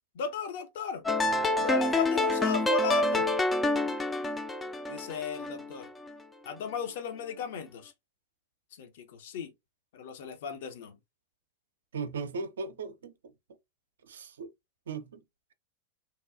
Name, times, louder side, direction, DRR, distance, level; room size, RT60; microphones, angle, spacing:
voice 1, 0.1-1.0 1.6-3.3 4.9-5.9 6.5-7.9 8.8-9.5 9.9-11.0, left 7 dB, 55° left, 0.6 m, -35 dB
sound 1, 1.1-6.1, left 1 dB, 10° left, 0.3 m, -28 dB
voice 2, 11.9-13.1 14.1-14.5 14.9-15.2, right 4 dB, 65° right, 0.4 m, -37 dB
2.9 x 2.2 x 2.4 m
figure-of-eight pair, 90°, 0 cm